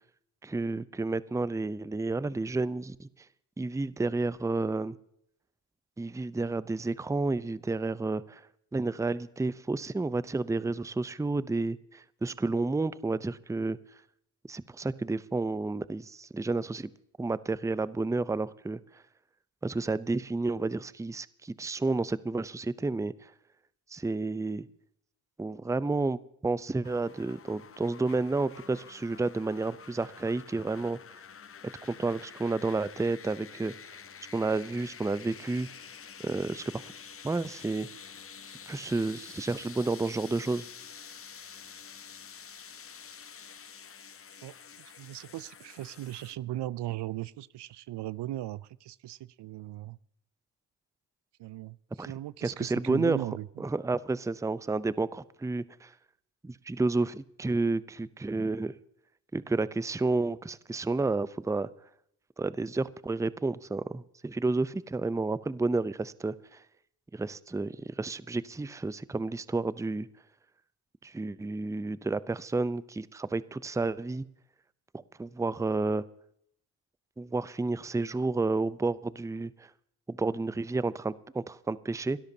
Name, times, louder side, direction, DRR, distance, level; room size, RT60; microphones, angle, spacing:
voice 1, 0.4-3.1 3.6-5.0 6.0-8.4 8.7-13.8 14.5-16.9 17.2-18.8 19.6-23.1 23.9-24.7 25.4-31.0 31.8-33.7 34.3-35.7 36.2-36.9 37.2-37.9 38.7-40.6 52.0-52.1 52.4-53.2 53.6-55.9 56.4-58.7 59.3-61.7 62.4-66.6 67.1-70.1 71.0-74.2 75.2-76.0 77.2-79.7 80.1-82.2, right 3 dB, 5° right, 18 dB, 0.6 m, -31 dB
sound 1, 26.8-46.4, left 7 dB, 30° left, 0.7 m, -48 dB
voice 2, 44.4-50.0 51.4-53.5, right 15 dB, 60° right, 20 dB, 0.6 m, -38 dB
28.5 x 13.0 x 2.8 m, 0.71 s
hypercardioid pair, 45°, 48 cm